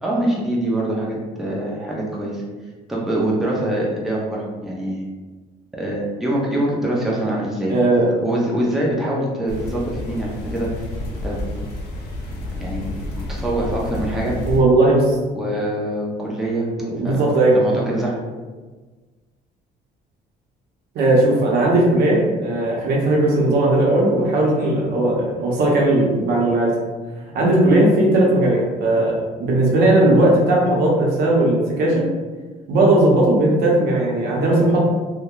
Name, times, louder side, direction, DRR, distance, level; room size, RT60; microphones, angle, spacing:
voice 1, 0.0-2.4 2.9-5.0 5.7-7.7 8.2-10.7 11.2-11.4 12.3-12.9 13.2-14.4 15.3-16.7 17.0-17.3 17.5-18.2, right 1 dB, ahead, -4 dB, 0.5 m, -24 dB
voice 2, 7.7-8.1 14.5-15.1 16.8-17.8 20.9-26.7 27.3-32.1 32.7-34.8, right 1 dB, 70° right, -3 dB, 0.7 m, -17 dB
sound 1, 9.5-14.6, left 1 dB, 75° left, 0.6 m, -30 dB
2.7 x 2.1 x 2.3 m, 1.3 s
cardioid pair, 110°, 17 cm